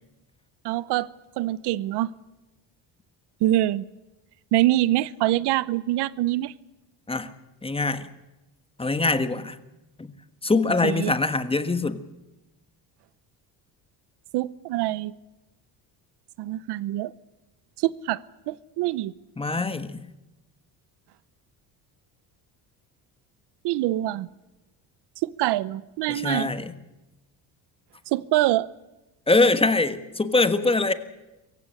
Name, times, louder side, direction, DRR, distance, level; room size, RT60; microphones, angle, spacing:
voice 1, 0.6-1.1 1.4-2.1 3.4-3.9 4.5-6.5 10.8-11.1 14.3-15.1 16.4-17.1 17.8-19.1 23.6-24.3 25.2-26.5 28.1-28.7, right 15 dB, 80° right, 0.8 m, -25 dB
voice 2, 7.6-8.1 8.8-9.6 10.0-10.1 10.4-12.0 19.4-20.0 26.1-26.7 29.3-30.9, left 3 dB, 15° left, 1.4 m, -23 dB
23.5 x 15.5 x 9.9 m
cardioid pair, 115°, 40 cm